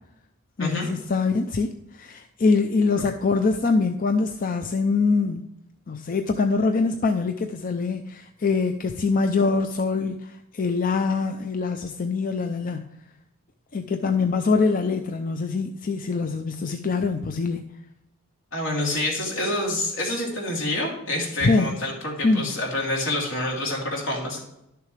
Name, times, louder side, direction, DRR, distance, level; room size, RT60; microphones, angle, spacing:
voice 1, 0.6-5.4 5.9-12.9 13.7-17.6 21.4-21.7 22.2-22.5, left 4 dB, 45° left, 6 dB, 0.5 m, -24 dB
voice 2, 18.5-24.4, left 1 dB, 75° left, -2 dB, 3.0 m, -27 dB
11.5 x 6.8 x 3.3 m, 0.84 s
head